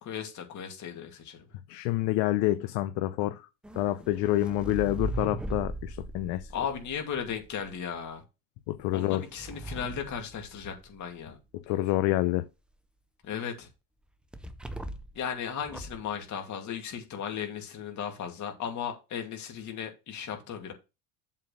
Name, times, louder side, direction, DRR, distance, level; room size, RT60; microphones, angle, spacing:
voice 1, 0.0-1.6 6.5-8.2 8.9-11.4 13.2-13.7 15.1-20.7, left 8 dB, 40° left, 2.4 m, -36 dB
voice 2, 1.7-3.5 3.7-6.5 8.7-9.2 11.7-12.4, left 15 dB, 65° left, 0.8 m, -27 dB
sound 1, 3.6-7.7 8.7-11.0 14.3-15.2 15.6-16.1, right 2 dB, 5° right, 0.3 m, -39 dB
7.4 x 4.3 x 6.5 m
cardioid pair, 140°, 44 cm